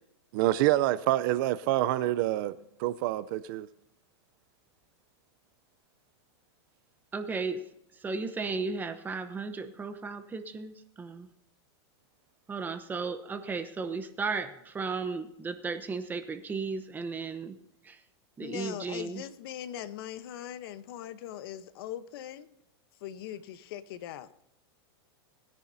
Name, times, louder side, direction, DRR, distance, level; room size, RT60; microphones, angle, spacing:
voice 1, 0.3-3.7, right 15 dB, 50° right, 0.6 m, -27 dB
voice 2, 7.1-7.6 8.0-11.3 12.5-17.6 17.8-18.0 18.4-19.2, right 4 dB, 15° right, 0.9 m, -35 dB
voice 3, 18.4-22.5 23.0-24.3, left 11 dB, 60° left, 0.9 m, -40 dB
20.5 x 10.0 x 2.7 m
supercardioid pair, 145°, 14 cm